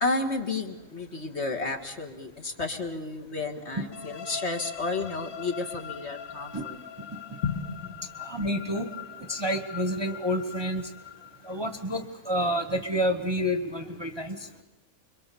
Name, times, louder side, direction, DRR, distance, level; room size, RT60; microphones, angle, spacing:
voice 1, 0.0-6.8 7.4-7.7, left 3 dB, 50° left, 4 dB, 2.0 m, -31 dB
sound 1, 3.9-11.7, left 7 dB, 80° left, 1.5 m, -42 dB
voice 2, 8.2-8.9 9.3-10.9 11.5-14.4, equal, 20° right, 7 dB, 1.1 m, -29 dB
26.0 x 23.0 x 7.0 m, 1.0 s
omnidirectional pair, 1.5 m